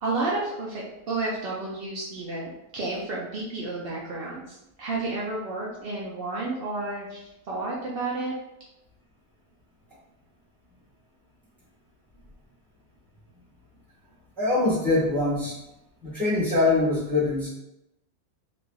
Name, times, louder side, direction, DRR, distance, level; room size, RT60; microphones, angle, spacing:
voice 1, 0.0-8.3, right 2 dB, 85° right, -4 dB, 0.5 m, -31 dB
voice 2, 14.4-15.6 16.0-17.5, left 2 dB, ahead, -9 dB, 1.3 m, -23 dB
3.1 x 2.5 x 2.3 m, 0.87 s
omnidirectional pair, 1.6 m